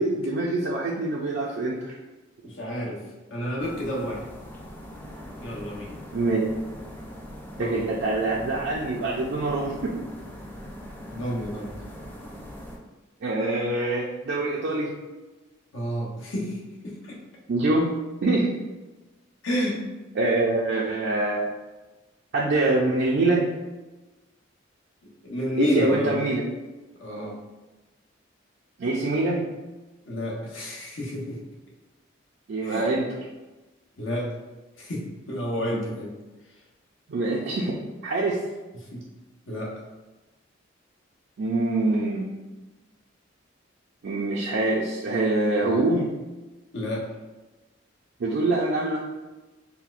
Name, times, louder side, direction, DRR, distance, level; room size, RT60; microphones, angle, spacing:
voice 1, 0.0-1.9 6.1-6.5 7.6-9.9 13.2-14.9 17.5-17.9 18.2-18.5 20.2-21.4 22.3-23.5 25.6-26.4 28.8-29.4 32.5-33.1 37.1-38.4 41.4-42.3 44.0-46.1 48.2-49.0, right 2 dB, 60° right, -4 dB, 0.4 m, -24 dB
voice 2, 2.4-3.0 3.3-4.3 5.4-6.0 7.6-7.8 11.1-11.7 15.7-17.2 19.4-19.8 25.0-26.2 27.0-27.4 30.1-31.4 32.6-32.9 34.0-34.3 34.8-36.1 38.7-39.0 39.5-39.7 45.6-45.8 46.7-47.1, left 1 dB, 75° left, -3 dB, 0.9 m, -30 dB
sound 1, 3.6-12.8, equal, 10° left, 0.4 m, -41 dB
4.2 x 2.1 x 2.4 m, 1.1 s
head